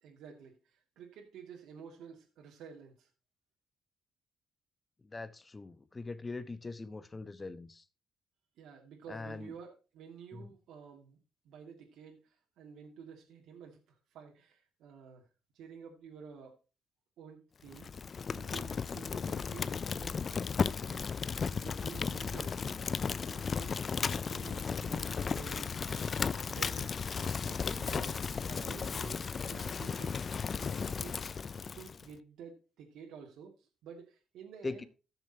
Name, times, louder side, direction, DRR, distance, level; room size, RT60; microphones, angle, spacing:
voice 1, 0.0-3.1 8.6-11.2 11.4-15.3 15.5-16.6 17.2-22.6 23.3-23.8 24.3-26.1 26.4-30.2 30.5-31.3 31.8-34.9, right 6 dB, 80° right, 2.4 m, -51 dB
voice 2, 5.0-7.8 9.1-9.5 10.3-10.5 18.5-18.7 28.5-28.7 29.0-29.1 34.6-34.8, left 3 dB, 25° left, 1.1 m, -42 dB
Fire, 17.7-32.1, left 5 dB, 45° left, 0.5 m, -35 dB
16.0 x 6.9 x 2.9 m
cardioid pair, 90°, 0 cm